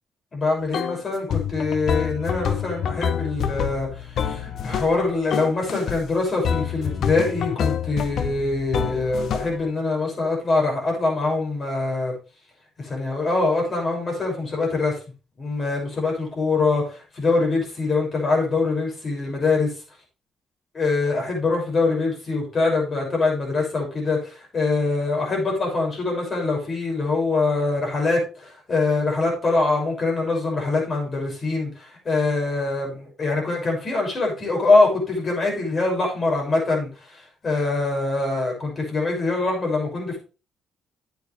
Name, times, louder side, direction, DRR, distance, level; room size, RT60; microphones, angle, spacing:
voice 1, 0.3-12.1 12.8-15.0 15.4-19.7 20.7-40.2, left 3 dB, 40° left, 0 dB, 6.4 m, -24 dB
sound 1, 0.7-1.0 1.3-5.0 5.3-6.0 6.4-9.6, left 8 dB, 70° left, 0.8 m, -27 dB
9.4 x 9.2 x 3.4 m, 0.33 s
cardioid pair, 90°, 0 cm